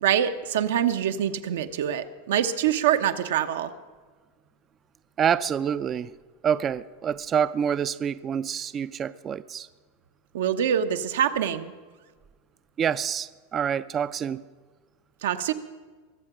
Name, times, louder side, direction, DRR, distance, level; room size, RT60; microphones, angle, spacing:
voice 1, 0.0-3.7 10.3-11.7 15.2-15.5, right 9 dB, 85° right, 9 dB, 1.0 m, -25 dB
voice 2, 5.2-6.1 6.4-9.7 12.8-14.4, right 8 dB, 25° right, 15 dB, 0.3 m, -27 dB
22.5 x 7.7 x 6.1 m, 1.5 s
supercardioid pair, 150°, 0 cm